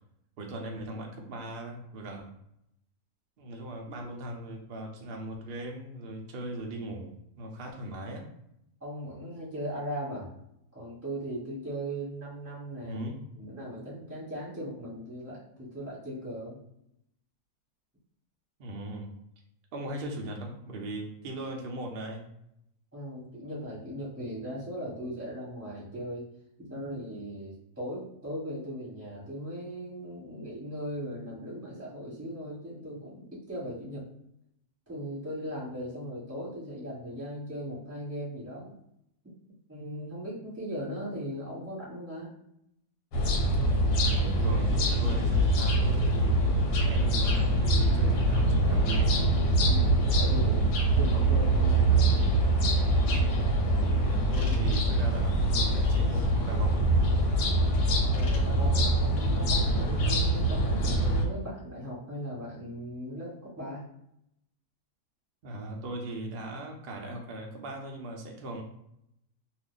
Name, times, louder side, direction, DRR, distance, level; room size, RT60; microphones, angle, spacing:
voice 1, 0.4-2.3 3.4-8.2 12.8-13.2 18.6-19.1 19.7-22.2 43.9-49.1 53.8-56.8 65.4-68.6, right 1 dB, 75° right, 1 dB, 0.5 m, -39 dB
voice 2, 8.8-10.3 10.7-13.0 13.4-16.6 22.9-26.3 26.6-34.1 34.9-38.8 39.7-42.3 49.7-50.6 50.9-52.1 58.1-63.8, equal, 10° right, -8 dB, 1.3 m, -38 dB
sound 1, 43.1-61.3, right 1 dB, 75° left, 1.3 m, -24 dB
2.7 x 2.5 x 3.7 m, 0.78 s
omnidirectional pair, 1.8 m